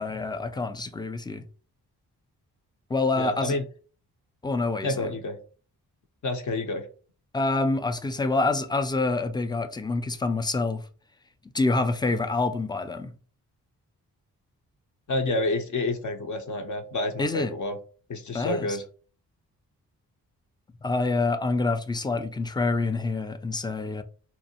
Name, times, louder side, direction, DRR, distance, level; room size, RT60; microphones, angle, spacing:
voice 1, 0.0-1.4 2.9-3.6 4.4-5.1 7.3-10.8 11.5-13.1 17.2-17.5 18.3-18.8 20.8-24.0, left 3 dB, 10° left, 0.3 m, -27 dB
voice 2, 3.2-3.6 4.8-5.4 6.2-6.9 15.1-17.8 18.1-18.8, left 2 dB, 50° left, 0.6 m, -29 dB
2.6 x 2.0 x 2.7 m
supercardioid pair, 45°, 39 cm